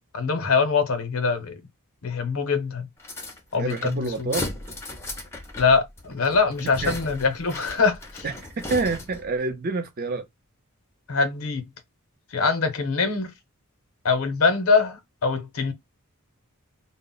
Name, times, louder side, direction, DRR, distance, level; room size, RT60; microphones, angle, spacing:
voice 1, 0.1-1.6 2.0-2.9 3.5-4.3 5.6-8.3 11.1-11.6 12.3-13.3 14.0-15.7, left 4 dB, 70° left, 0.6 m, -23 dB
sound 1, 3.0-9.3, left 2 dB, 10° left, 0.5 m, -37 dB
voice 2, 3.6-4.5 6.6-6.9 8.2-10.2, right 3 dB, 40° right, 0.5 m, -28 dB
2.0 x 2.0 x 3.7 m
head